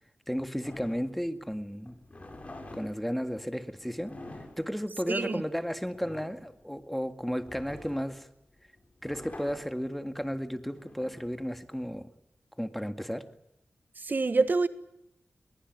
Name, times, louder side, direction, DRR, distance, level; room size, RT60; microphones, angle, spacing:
voice 1, 0.3-1.9 2.7-4.2 4.6-8.3 9.0-12.1 12.6-13.3, equal, 5° left, 1.9 m, -33 dB
sound 1, 0.6-12.0, left 2 dB, 35° left, 7.5 m, -48 dB
voice 2, 5.1-5.4 14.0-14.7, right 3 dB, 50° right, 1.4 m, -26 dB
22.0 x 21.5 x 9.3 m
cardioid pair, 55°, 4 cm